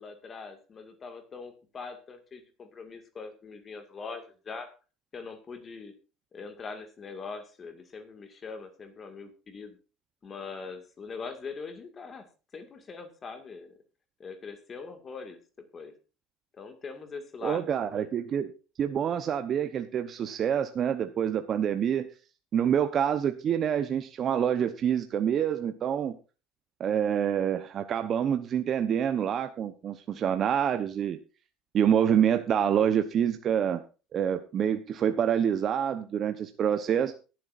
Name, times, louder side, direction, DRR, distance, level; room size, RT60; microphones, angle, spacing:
voice 1, 0.0-4.7 5.1-6.0 6.3-9.8 10.2-12.3 12.5-13.8 14.2-15.4 15.7-15.9 16.6-18.1, left 4 dB, 35° left, 7 dB, 2.0 m, -42 dB
voice 2, 17.4-18.5 18.8-22.1 22.5-26.2 26.8-31.2 31.7-33.8 34.1-37.1, right 9 dB, 45° right, 8 dB, 0.9 m, -27 dB
22.5 x 7.7 x 2.6 m, 0.33 s
supercardioid pair, 90°, 0 cm